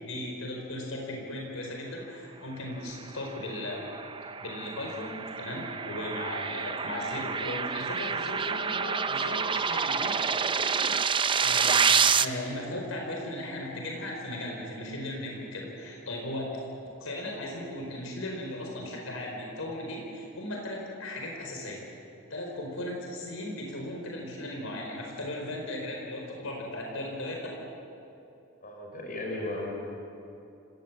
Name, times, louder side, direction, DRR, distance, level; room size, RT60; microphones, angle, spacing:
voice 1, 0.0-3.9 4.4-10.2 11.4-11.8 12.2-16.5 17.0-21.9 22.3-27.5, left 1 dB, 80° left, 0 dB, 4.7 m, -37 dB
sound 1, 3.4-12.2, right 6 dB, 25° right, 0.6 m, -28 dB
voice 2, 28.6-29.7, left 1 dB, 40° left, 0 dB, 5.5 m, -35 dB
27.5 x 18.5 x 7.5 m, 2.8 s
head